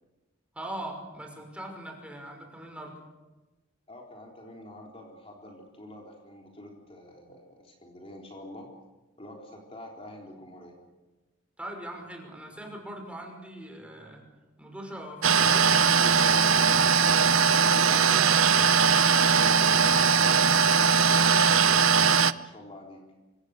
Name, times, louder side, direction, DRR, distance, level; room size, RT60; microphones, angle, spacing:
voice 1, 0.5-3.0 11.6-14.2 14.6-16.5 17.6-18.1 19.0-19.3, right 1 dB, 5° right, 2 dB, 5.9 m, -41 dB
voice 2, 3.9-8.7 9.2-10.8 17.8-18.5 19.3-19.7 20.8-23.0, left 1 dB, 30° left, -1 dB, 3.9 m, -46 dB
sound 1, 15.2-22.3, right 6 dB, 80° right, 0.8 m, -20 dB
26.5 x 25.5 x 6.8 m, 1.1 s
head